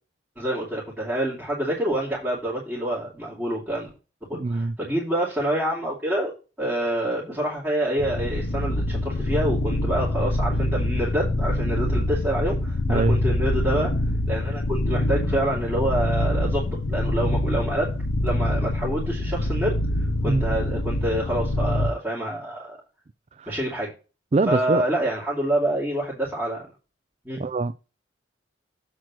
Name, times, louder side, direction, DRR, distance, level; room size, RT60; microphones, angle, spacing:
voice 1, 0.4-3.9 4.3-6.3 6.6-13.9 14.3-17.9 18.2-22.8 23.5-23.9 24.5-26.7 27.2-27.5, right 1 dB, 10° right, 2.8 m, -27 dB
voice 2, 4.3-4.7 12.9-13.2 20.2-20.6 23.4-23.5 24.3-24.8 27.4-27.8, right 3 dB, 35° right, 0.4 m, -24 dB
sound 1, 8.0-21.9, left 1 dB, 90° left, 0.7 m, -25 dB
7.9 x 4.4 x 6.1 m
head